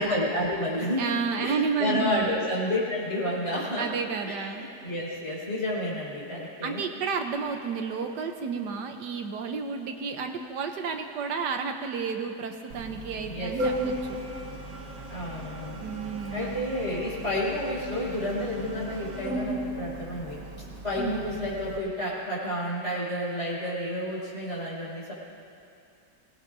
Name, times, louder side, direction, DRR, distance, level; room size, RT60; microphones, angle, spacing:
voice 1, 0.0-3.9 4.2-6.8 13.2-13.5 15.1-15.8 16.3-20.4 20.8-25.1, left 1 dB, 40° left, -6 dB, 5.4 m, -30 dB
voice 2, 1.0-2.5 3.8-4.6 6.6-14.2 15.8-16.7 21.0-21.1, right 5 dB, 75° right, 5 dB, 1.4 m, -31 dB
Organ, 12.7-21.8, right 1 dB, 55° right, 1.5 m, -36 dB
26.0 x 18.0 x 2.7 m, 2.6 s
omnidirectional pair, 1.9 m